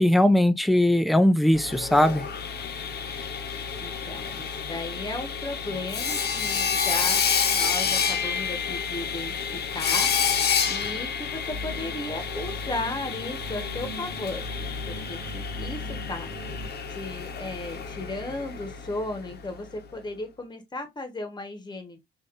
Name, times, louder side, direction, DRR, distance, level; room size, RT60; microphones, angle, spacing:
voice 1, 0.0-2.2, left 1 dB, ahead, 0.3 m, -20 dB
Sawing, 1.5-19.4, left 6 dB, 55° left, 0.8 m, -29 dB
voice 2, 3.8-7.2 7.5-9.3 9.7-10.1 10.7-14.4 14.8-16.3 16.9-22.0, left 2 dB, 20° left, 1.0 m, -35 dB
sound 1, 11.5-16.7, equal, 35° right, 0.9 m, -39 dB
3.6 x 2.5 x 2.4 m
cardioid pair, 90°, 20 cm